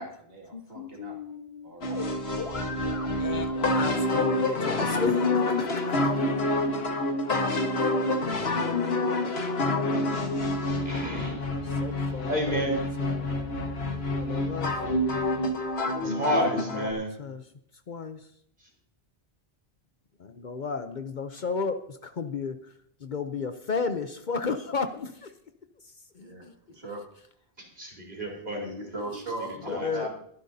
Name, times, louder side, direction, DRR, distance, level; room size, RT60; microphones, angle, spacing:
voice 1, 0.0-1.4 1.6-2.0 26.2-27.0 28.5-30.1, right 1 dB, 70° right, 0 dB, 2.6 m, -39 dB
voice 2, 0.5-2.0 3.2-6.1 11.6-13.3 14.0-14.7 15.9-16.3 16.7-16.9 17.2-17.4 17.9-18.2 20.2-22.6 23.0-25.3 26.1-26.5 29.6-30.1, left 4 dB, 50° left, 9 dB, 0.8 m, -34 dB
sound 1, 1.8-16.9, left 2 dB, 80° left, 1.6 m, -27 dB
voice 3, 10.8-11.5 12.3-12.8 15.1-15.3 16.0-17.1 27.8-28.7 29.7-30.1, right 1 dB, 55° right, -1 dB, 4.3 m, -30 dB
22.5 x 10.5 x 2.7 m, 0.69 s
omnidirectional pair, 1.0 m